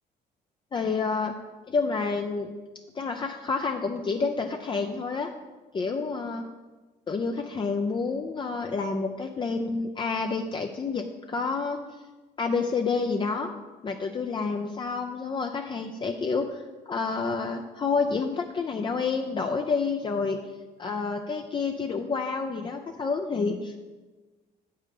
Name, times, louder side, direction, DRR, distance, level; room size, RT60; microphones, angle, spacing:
voice 1, 0.7-1.3 1.7-2.5 2.9-5.3 5.7-6.4 7.1-11.8 12.4-13.5 13.8-16.6 16.9-20.4 20.8-23.8, left 4 dB, 30° left, 3 dB, 0.6 m, -29 dB
8.1 x 5.6 x 6.6 m, 1.3 s
cardioid pair, 110°, 17 cm